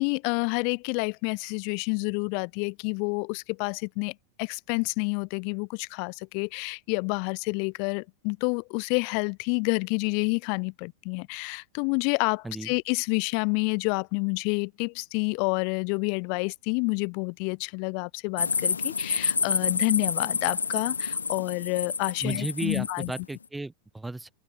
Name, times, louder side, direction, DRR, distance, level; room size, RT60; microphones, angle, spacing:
voice 1, 0.0-23.1, left 40 dB or more, 45° left, 3.3 m, -29 dB
sound 1, 18.4-23.2, left 5 dB, 75° left, 0.4 m, -28 dB
voice 2, 22.2-24.3, right 2 dB, 5° right, 2.8 m, -34 dB
open air
figure-of-eight pair, 90°, 0 cm